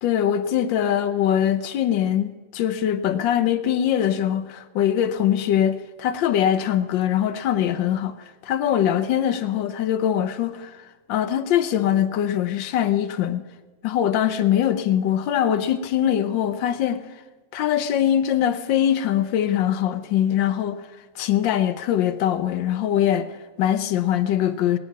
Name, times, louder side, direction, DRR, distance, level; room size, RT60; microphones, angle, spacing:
voice 1, 0.0-13.5 13.8-17.0 17.5-20.9 21.1-24.8, left 10 dB, 85° left, 10 dB, 1.4 m, -22 dB
20.0 x 9.5 x 5.9 m, 1.3 s
omnidirectional pair, 2.0 m